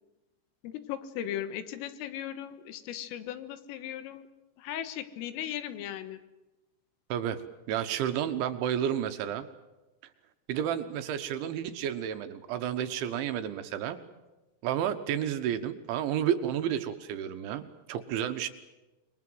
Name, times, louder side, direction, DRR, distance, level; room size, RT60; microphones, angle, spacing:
voice 1, 0.6-4.3 4.6-6.2, left 11 dB, 80° left, 11 dB, 3.9 m, -37 dB
voice 2, 7.7-9.5 10.5-14.0 14.6-18.5, right 10 dB, 75° right, 9 dB, 3.1 m, -31 dB
28.0 x 22.0 x 7.8 m, 1.1 s
omnidirectional pair, 6.0 m